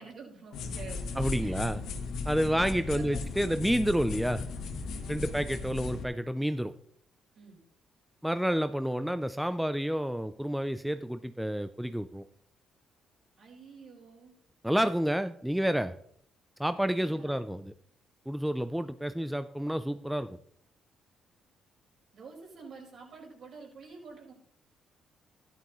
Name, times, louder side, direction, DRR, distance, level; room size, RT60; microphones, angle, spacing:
voice 1, 0.0-1.1 1.4-1.6 2.4-3.7 5.0-5.4 7.3-7.6 13.4-14.3 17.0-17.4 22.1-24.3, right 4 dB, 60° right, -2 dB, 5.3 m, -49 dB
sound 1, 0.5-6.0, left 4 dB, 75° left, 1.5 m, -36 dB
voice 2, 1.2-1.8 2.2-4.4 5.1-6.7 8.2-12.2 14.6-15.9 16.6-17.7 18.3-20.4, equal, 5° right, 11 dB, 0.5 m, -29 dB
13.0 x 11.0 x 3.1 m, 0.64 s
cardioid pair, 90°, 0 cm